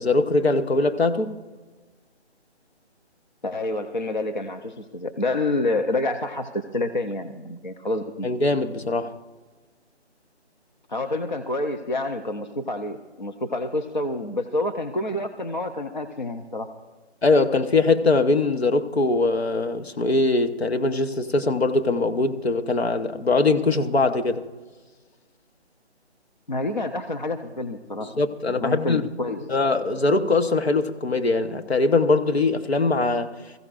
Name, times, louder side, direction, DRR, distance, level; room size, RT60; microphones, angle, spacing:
voice 1, 0.0-1.4 8.2-9.1 17.2-24.5 28.0-29.0 29.5-33.3, left 3 dB, 65° left, 1.0 m, -22 dB
voice 2, 3.4-8.3 10.9-16.7 26.5-28.2 28.5-29.5, left 2 dB, 45° left, 0.6 m, -28 dB
21.0 x 15.5 x 2.5 m
hypercardioid pair, 180°, 34 cm